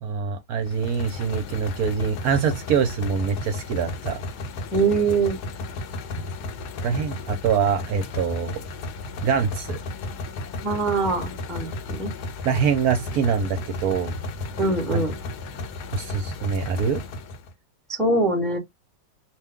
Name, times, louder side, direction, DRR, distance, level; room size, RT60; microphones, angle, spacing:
voice 1, 0.0-4.2 6.1-6.3 6.8-8.6 9.2-9.8 12.4-14.2 14.9-15.0 15.9-17.0, right 6 dB, 70° right, 1.0 m, -24 dB
sound 1, 0.6-17.5, left 2 dB, 70° left, 1.2 m, -34 dB
voice 2, 4.7-5.4 10.6-12.1 14.6-15.1 17.9-18.6, right 3 dB, ahead, 0.7 m, -23 dB
2.9 x 2.2 x 3.5 m
omnidirectional pair, 1.8 m